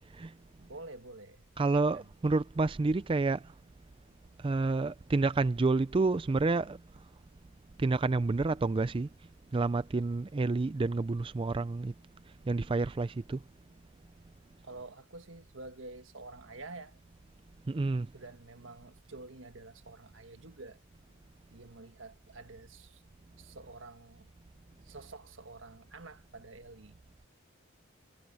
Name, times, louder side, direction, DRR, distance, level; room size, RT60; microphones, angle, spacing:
voice 1, 0.6-2.1 14.6-17.0 18.1-20.8 21.5-23.0 23.4-24.3 24.8-27.0, right 3 dB, 75° right, 1.5 m, -49 dB
voice 2, 1.6-3.5 4.4-6.8 7.8-9.1 9.5-11.9 12.4-13.4 17.7-18.1, right 3 dB, 25° right, 0.4 m, -29 dB
head